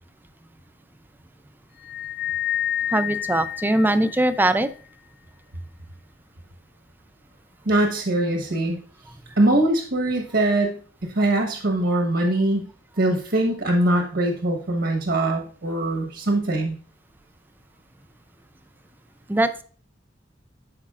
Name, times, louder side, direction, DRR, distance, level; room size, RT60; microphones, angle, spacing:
sound 1, 1.8-4.5, left 12 dB, 55° left, 0.4 m, -29 dB
voice 1, 2.9-4.7 19.3-19.6, right 1 dB, 10° right, 11 dB, 0.4 m, -21 dB
voice 2, 7.6-8.8 9.4-12.7 13.0-16.8, right 1 dB, 70° right, 3 dB, 1.2 m, -22 dB
11.5 x 4.9 x 2.4 m, 0.43 s
head